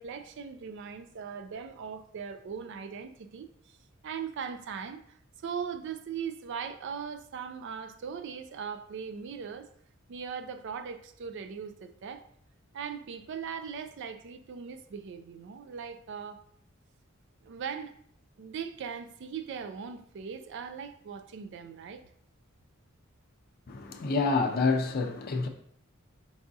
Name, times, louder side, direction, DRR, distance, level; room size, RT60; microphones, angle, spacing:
voice 1, 0.0-3.8 4.0-9.7 10.1-12.2 12.7-16.4 17.4-17.9 18.4-22.0, right 6 dB, 60° right, 0.4 m, -39 dB
voice 2, 23.7-25.5, left 4 dB, 45° left, 0.4 m, -27 dB
4.7 x 3.5 x 2.7 m
head